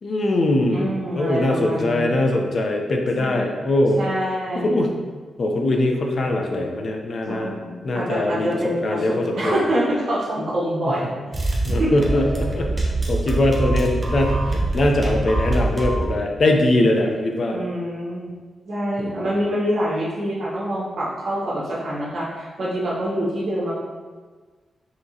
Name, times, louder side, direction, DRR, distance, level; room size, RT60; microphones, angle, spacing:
voice 1, 0.0-4.0 4.6-4.9 5.4-7.5 7.8-8.5 8.8-9.6 10.9-11.0 11.6-17.6 19.0-19.2, left 1 dB, 55° left, 2 dB, 0.6 m, -22 dB
voice 2, 0.7-2.2 3.2-3.5 4.0-4.9 7.3-11.1 11.4-11.9 17.5-18.3 18.6-23.7, right 1 dB, 65° right, -7 dB, 1.3 m, -26 dB
sound 1, 11.3-16.1, right 2 dB, 30° right, 0.8 m, -24 dB
5.6 x 2.9 x 2.8 m, 1.4 s
cardioid pair, 105°, 0 cm